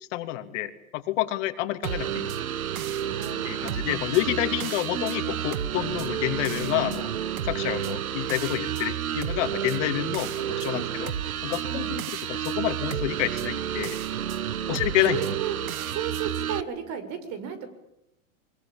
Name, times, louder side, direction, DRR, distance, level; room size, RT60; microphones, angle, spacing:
voice 1, 0.1-2.3 3.4-7.1 7.4-11.1 11.4-12.0 12.3-14.0 14.7-15.2, left 14 dB, 60° left, 8 dB, 3.0 m, -28 dB
sound 1, 1.8-16.6, right 10 dB, 85° right, 1.5 m, -30 dB
voice 2, 3.1-4.0 4.9-5.4 10.7-10.9 11.7-11.9 14.7-14.8 15.1-15.6 15.9-17.7, right 8 dB, 40° right, 10 dB, 6.5 m, -35 dB
25.0 x 22.5 x 8.9 m, 0.84 s
hypercardioid pair, 125°, 41 cm